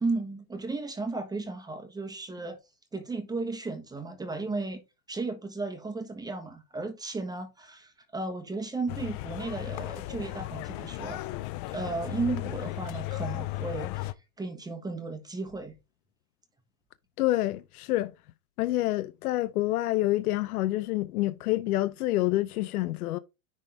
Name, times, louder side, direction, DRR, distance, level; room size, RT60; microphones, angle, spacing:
voice 1, 0.0-2.6 2.9-4.8 5.1-11.3 11.7-15.7, right 3 dB, 10° right, 1.2 m, -34 dB
sound 1, 8.9-14.1, left 17 dB, 35° left, 0.4 m, -35 dB
voice 2, 17.2-18.1 18.6-23.2, left 16 dB, 80° left, 0.7 m, -27 dB
10.0 x 3.6 x 3.8 m
supercardioid pair, 135°, 44 cm